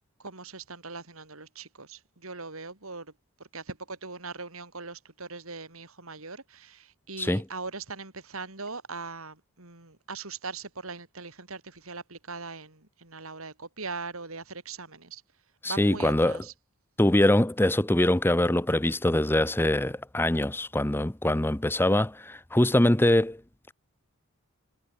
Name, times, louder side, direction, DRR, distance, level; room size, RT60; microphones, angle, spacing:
voice 1, 0.2-3.1 3.5-15.2 15.6-16.5, right 4 dB, 75° right, 4.6 m, -40 dB
voice 2, 15.6-16.4 17.0-23.4, left 1 dB, 10° left, 0.8 m, -23 dB
head